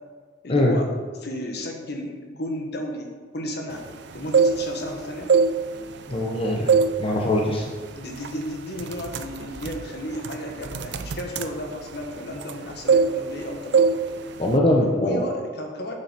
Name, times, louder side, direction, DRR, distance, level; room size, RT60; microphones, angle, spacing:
voice 1, 0.4-0.9 1.2-3.8 4.1-5.3 7.9-13.9 14.9-15.9, left 1 dB, 60° left, 2 dB, 1.5 m, -33 dB
sound 1, 4.1-4.9 5.2-6.3 6.7-7.0 7.4-7.6 8.2-8.4 8.7-12.6 12.9-13.4 13.7-14.0 14.3-14.6, right 5 dB, 65° right, 0.5 m, -22 dB
voice 2, 6.1-6.7 7.0-7.6 14.4-15.3, left 1 dB, 30° left, -1 dB, 0.9 m, -21 dB
7.9 x 6.8 x 5.8 m, 1.5 s
head